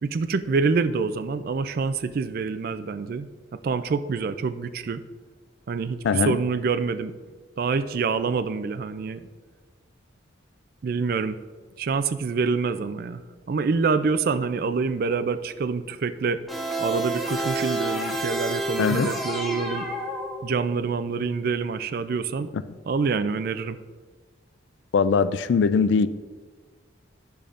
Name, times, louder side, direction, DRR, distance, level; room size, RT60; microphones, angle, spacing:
voice 1, 0.0-5.0 5.7-7.1 7.6-9.2 10.8-11.4 11.8-13.2 13.5-16.4 16.8-19.9 20.4-22.5 22.9-23.8, right 4 dB, 50° right, 12 dB, 0.3 m, -26 dB
voice 2, 6.0-6.4 18.8-19.1 24.9-26.1, left 5 dB, 65° left, 14 dB, 0.3 m, -21 dB
sound 1, 16.5-20.8, right 1 dB, ahead, 0.7 m, -29 dB
10.5 x 6.7 x 2.5 m, 1.4 s
head